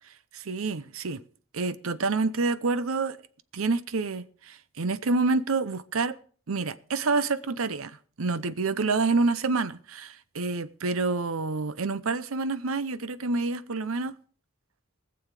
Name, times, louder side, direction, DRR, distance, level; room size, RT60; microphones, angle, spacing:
voice 1, 0.3-1.2 1.5-3.2 3.5-6.2 6.5-14.1, right 3 dB, 90° right, 0.7 m, -28 dB
21.0 x 7.1 x 4.8 m
head